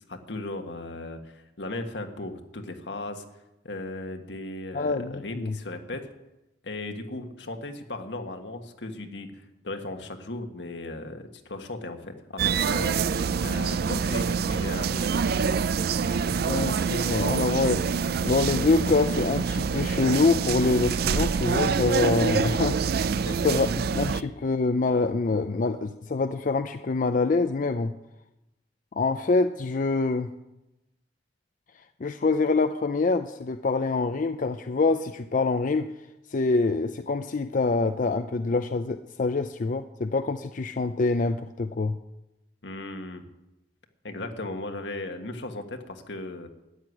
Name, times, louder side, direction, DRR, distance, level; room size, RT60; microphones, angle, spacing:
voice 1, 0.1-3.2 3.6-6.1 6.6-9.3 9.6-13.0 13.4-15.1 23.2-23.5 42.6-43.2 44.0-46.5, left 2 dB, 80° left, 5 dB, 1.6 m, -36 dB
voice 2, 4.7-5.6 16.3-17.8 18.2-23.1 23.4-23.7 23.9-27.9 29.0-30.3 32.0-35.9 36.3-42.0, left 3 dB, 45° left, 9 dB, 0.5 m, -25 dB
sound 1, 12.4-24.2, right 5 dB, 60° right, 0.4 m, -26 dB
13.5 x 7.9 x 9.8 m, 0.95 s
head